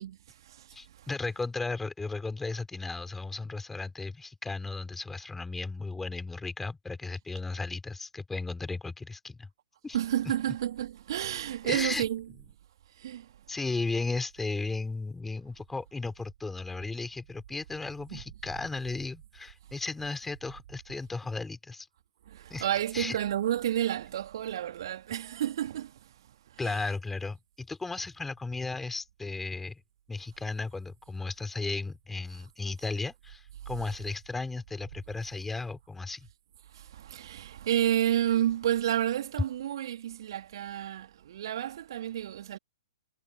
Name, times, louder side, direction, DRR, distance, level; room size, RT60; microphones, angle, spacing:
voice 1, 0.0-1.1 9.9-12.3 13.0-13.3 18.1-18.2 22.3-26.1 26.5-26.8 36.7-42.6, right 11 dB, 55° right, 2.4 m, -31 dB
voice 2, 0.7-9.5 9.8-10.0 10.2-10.3 11.6-12.0 13.5-21.9 22.5-22.7 22.9-23.2 26.6-29.8 30.1-36.3, left 3 dB, 5° left, 4.1 m, -35 dB
figure-of-eight pair, 110°, 3 cm